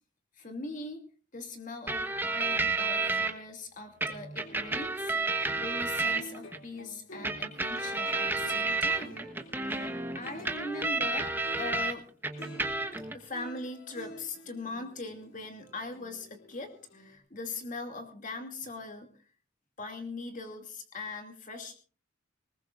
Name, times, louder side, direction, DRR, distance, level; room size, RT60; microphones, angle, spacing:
voice 1, 0.3-1.0 1.3-9.2 9.6-12.1 13.1-19.2 19.8-21.8, left 3 dB, 40° left, 4 dB, 2.5 m, -41 dB
sound 1, 1.9-3.3 4.0-6.6 7.2-11.9 12.2-13.1, right 3 dB, 10° right, 1.2 m, -31 dB
Untitled jam, 3.9-11.9 12.3-17.2, left 1 dB, 85° left, 3.2 m, -49 dB
20.5 x 20.0 x 2.5 m, 0.37 s
head